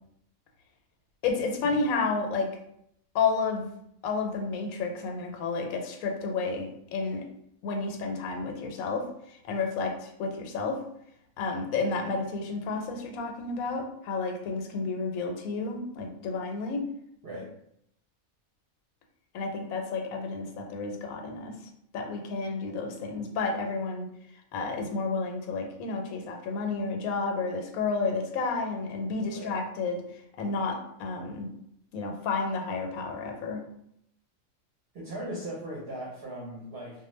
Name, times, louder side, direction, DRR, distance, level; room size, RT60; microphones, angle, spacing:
voice 1, 1.2-2.5 3.1-3.7 4.0-7.2 7.6-9.1 9.4-10.8 11.4-16.9 19.3-21.5 21.9-24.1 24.5-30.0 30.4-31.5 31.9-33.6, left 4 dB, 85° left, 3 dB, 1.0 m, -31 dB
voice 2, 17.2-17.6 29.2-29.6 34.9-37.1, right 1 dB, 55° right, -4 dB, 0.7 m, -39 dB
2.4 x 2.1 x 3.1 m, 0.73 s
omnidirectional pair, 1.4 m